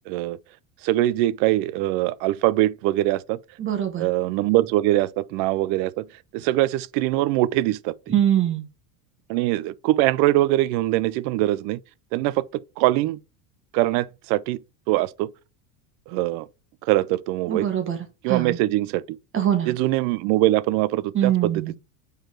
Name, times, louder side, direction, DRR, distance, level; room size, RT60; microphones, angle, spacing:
voice 1, 0.1-0.4 0.8-3.4 4.0-6.1 6.3-7.9 9.3-11.8 12.1-12.4 12.8-13.2 13.7-14.6 14.9-15.3 16.1-16.5 16.8-17.7 18.2-19.0 19.7-21.8, right 16 dB, 50° right, 0.5 m, -22 dB
voice 2, 3.6-4.0 8.1-8.7 17.5-18.0 18.3-18.6 19.3-19.7 21.1-21.7, right 10 dB, 30° right, 1.4 m, -23 dB
4.6 x 4.6 x 4.6 m
supercardioid pair, 135°, 43 cm